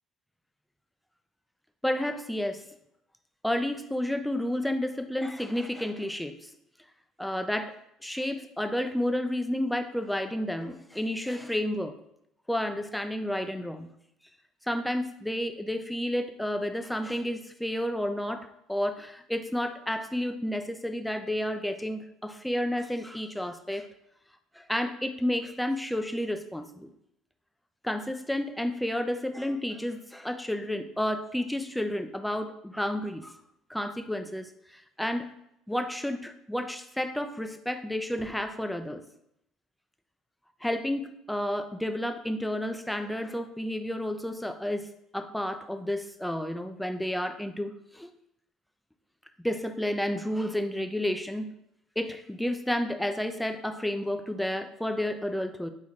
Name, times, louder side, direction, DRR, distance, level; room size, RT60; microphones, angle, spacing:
voice 1, 1.8-2.6 3.4-6.4 7.2-7.8 8.0-12.0 12.5-13.9 14.7-23.9 24.6-26.9 27.8-33.4 33.7-35.3 35.7-39.0 40.6-48.1 49.4-51.5 52.0-55.7, left 1 dB, 5° left, 8 dB, 0.4 m, -31 dB
4.0 x 3.0 x 3.7 m, 0.79 s
hypercardioid pair, 70°, 0 cm